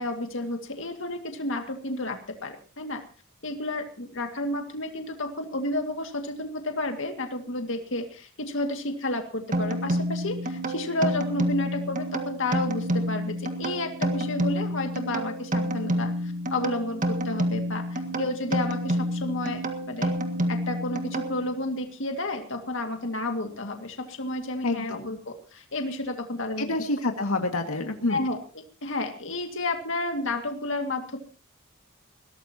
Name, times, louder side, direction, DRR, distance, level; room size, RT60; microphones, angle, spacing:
voice 1, 0.0-3.0 3.4-20.2 20.5-26.7 28.1-31.2, left 2 dB, 60° left, 4 dB, 2.2 m, -31 dB
sound 1, 9.5-21.7, equal, 35° right, 1.7 m, -29 dB
voice 2, 24.6-25.1 26.6-28.3, left 2 dB, 85° left, 4 dB, 2.0 m, -28 dB
21.5 x 17.0 x 2.9 m, 0.39 s
head